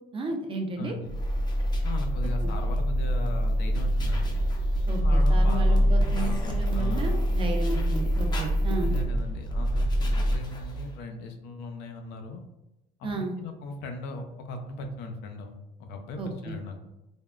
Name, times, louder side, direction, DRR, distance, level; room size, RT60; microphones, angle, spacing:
voice 1, 0.1-0.9 2.4-2.5 4.9-8.9 13.0-13.3 16.2-16.5, right 3 dB, 30° right, 3 dB, 0.4 m, -33 dB
voice 2, 0.8-1.2 1.8-4.4 5.0-7.3 8.8-12.4 13.0-15.5 15.8-16.8, left 2 dB, 80° left, 4 dB, 0.5 m, -38 dB
sound 1, 1.0-11.0, equal, 25° left, 0.5 m, -25 dB
3.4 x 2.0 x 2.3 m, 0.94 s
cardioid pair, 110°, 17 cm